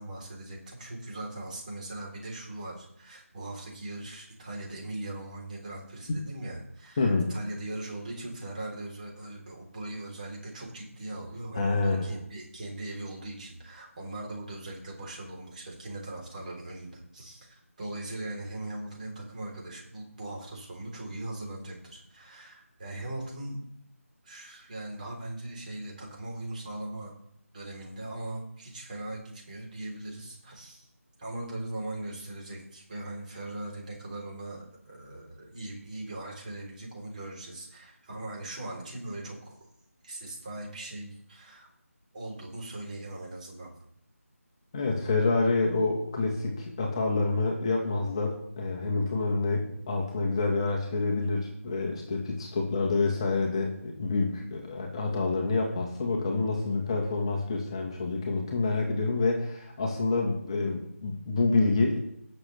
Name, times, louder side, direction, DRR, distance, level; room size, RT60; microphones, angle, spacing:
voice 1, 0.0-23.6 24.2-27.1 27.5-30.9 31.2-39.7 40.0-41.7 42.1-43.7, right 2 dB, 30° right, -2 dB, 3.6 m, -40 dB
voice 2, 7.0-7.4 11.5-12.2 44.7-62.0, left 3 dB, 20° left, 0 dB, 1.3 m, -27 dB
19.0 x 6.7 x 3.3 m, 0.72 s
figure-of-eight pair, 165°, 8 cm